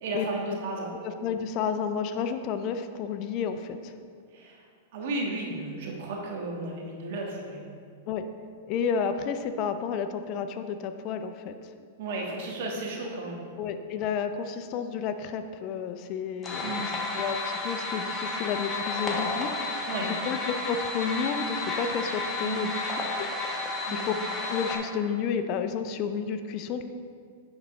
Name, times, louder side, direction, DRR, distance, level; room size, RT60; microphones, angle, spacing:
voice 1, 0.0-0.9 4.3-4.6 4.9-7.6 12.0-13.5 16.6-16.9 19.9-20.1 22.4-22.7 23.9-24.1, right 2 dB, 60° right, -1 dB, 1.4 m, -34 dB
voice 2, 1.0-3.9 8.1-8.3 8.7-11.5 13.6-24.1 24.5-26.8, left 6 dB, 45° left, 9 dB, 0.4 m, -31 dB
sound 1, 16.4-24.8, left 3 dB, 20° left, 1.1 m, -32 dB
9.8 x 4.0 x 3.3 m, 2.2 s
hypercardioid pair, 115°, 0 cm